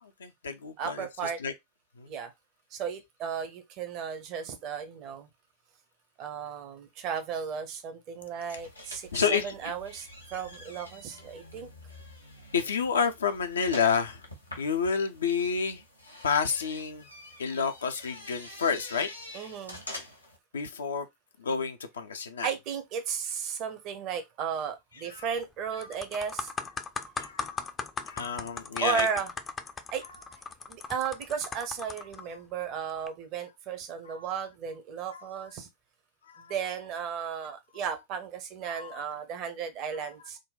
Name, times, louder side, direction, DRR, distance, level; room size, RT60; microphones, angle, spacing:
voice 1, 0.2-1.1 1.4-1.5 2.0-2.1 8.5-8.6 9.1-9.5 12.5-14.2 14.6-15.8 16.2-17.1 17.4-19.1 20.5-21.1 21.4-22.5 25.1-25.3 27.2-27.7 28.1-29.1 34.1-34.3 35.1-35.5 36.3-36.5 38.7-39.2, left 6 dB, 70° left, 0.5 m, -30 dB
voice 2, 0.8-1.4 2.1-2.3 2.7-5.3 6.2-11.7 19.3-19.8 22.4-26.5 27.0-27.1 28.8-29.3 29.9-30.0 30.7-35.7 36.5-40.4, right 7 dB, 40° right, 0.8 m, -35 dB
sound 1, 8.5-20.4, left 1 dB, 85° left, 1.0 m, -47 dB
sound 2, 25.2-25.4 25.8-32.2 32.9-33.1, left 5 dB, 20° left, 0.4 m, -38 dB
3.8 x 2.2 x 3.9 m
figure-of-eight pair, 90°, 0 cm